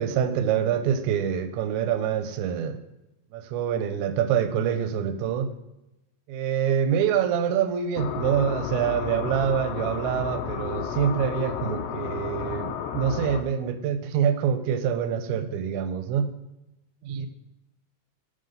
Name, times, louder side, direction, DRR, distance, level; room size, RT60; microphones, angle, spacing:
voice 1, 0.0-2.8 3.3-5.5 6.3-16.3 17.0-17.3, right 8 dB, 80° right, 10 dB, 1.8 m, -26 dB
sound 1, 8.0-13.4, left 8 dB, 90° left, 1.4 m, -32 dB
9.4 x 3.5 x 5.3 m, 0.94 s
omnidirectional pair, 3.5 m